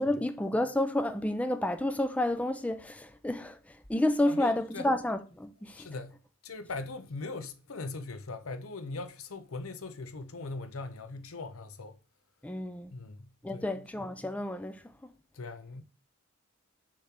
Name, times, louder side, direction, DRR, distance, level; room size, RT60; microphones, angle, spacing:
voice 1, 0.0-5.9 12.4-12.9 13.4-15.1, left 1 dB, 5° left, 0.4 m, -30 dB
voice 2, 4.2-4.9 5.7-12.0 12.9-13.9 15.3-15.8, left 3 dB, 90° left, 0.7 m, -40 dB
6.7 x 3.3 x 5.7 m
head